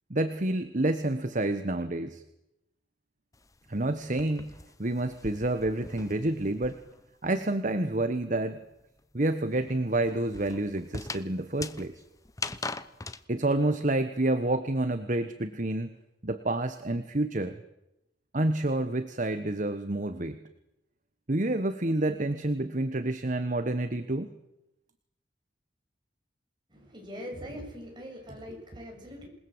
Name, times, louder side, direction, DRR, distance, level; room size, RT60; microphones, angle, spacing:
voice 1, 0.1-2.2 3.7-4.5 4.8-6.8 7.2-8.6 9.1-11.9 13.3-15.9 16.2-17.6 18.3-20.4 21.3-24.3, right 2 dB, 45° right, 10 dB, 1.3 m, -28 dB
footsteps inside old house, 3.3-7.1 7.4-13.2, left 3 dB, 20° left, 0.9 m, -41 dB
voice 2, 26.7-29.3, equal, 25° right, 1 dB, 7.6 m, -42 dB
27.5 x 20.5 x 8.0 m, 0.87 s
head